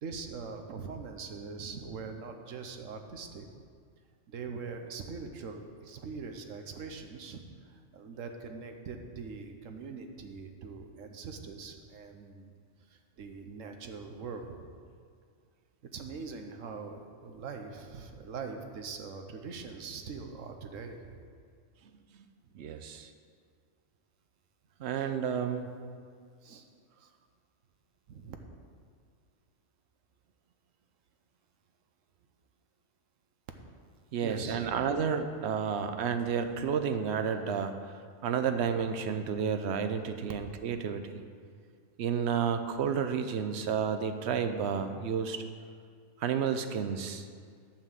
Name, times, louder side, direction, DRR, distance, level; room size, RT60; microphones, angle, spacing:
voice 1, 0.0-3.5 4.3-12.5 12.9-14.7 15.9-21.3 22.5-22.6 26.4-26.6 27.0-27.1 28.1-28.4 34.2-34.8, right 5 dB, 80° right, 5 dB, 1.2 m, -42 dB
voice 2, 22.5-23.1 24.8-25.7 34.1-37.7 38.2-41.2 42.0-45.4 46.2-47.3, right 7 dB, 65° right, 8 dB, 0.9 m, -31 dB
11.0 x 4.5 x 7.4 m, 2.1 s
omnidirectional pair, 1.3 m